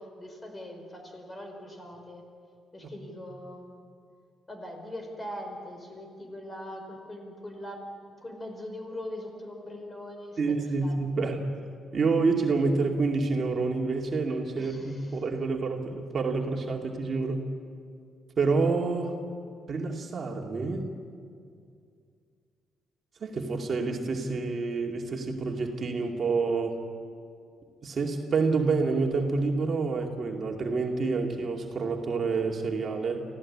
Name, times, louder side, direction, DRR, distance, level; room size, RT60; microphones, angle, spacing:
voice 1, 0.0-2.3 2.7-3.8 4.5-7.9 8.2-11.3 14.6-15.2, left 1 dB, 25° left, 3 dB, 5.0 m, -41 dB
voice 2, 10.4-11.4 11.9-17.4 18.4-19.2 19.7-20.9 23.2-26.8 27.8-33.2, right 4 dB, 45° right, 1 dB, 2.4 m, -28 dB
25.0 x 16.0 x 8.6 m, 2.3 s
cardioid pair, 90°, 0 cm